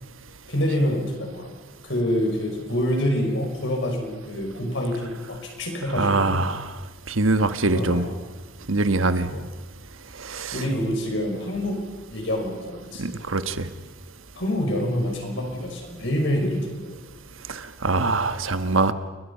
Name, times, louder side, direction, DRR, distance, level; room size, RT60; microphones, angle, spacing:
voice 1, 0.5-1.5 1.8-6.4 7.7-8.2 9.3-9.4 10.5-11.8 12.1-13.1 14.3-17.0, equal, 65° left, 1 dB, 6.1 m, -26 dB
voice 2, 5.9-6.7 7.1-8.0 8.7-9.3 10.2-10.6 13.0-13.7 17.5-18.9, right 3 dB, 80° right, 10 dB, 1.4 m, -23 dB
29.5 x 22.5 x 5.7 m, 1.3 s
head